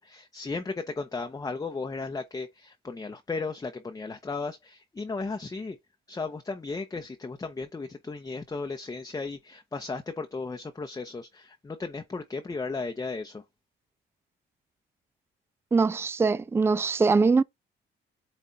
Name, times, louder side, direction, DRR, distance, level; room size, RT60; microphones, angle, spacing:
voice 1, 0.0-5.8 6.1-13.4, left 3 dB, 20° left, 0.7 m, -35 dB
voice 2, 15.7-17.4, right 4 dB, 10° right, 0.3 m, -22 dB
8.4 x 3.1 x 3.9 m
cardioid pair, 90°, 20 cm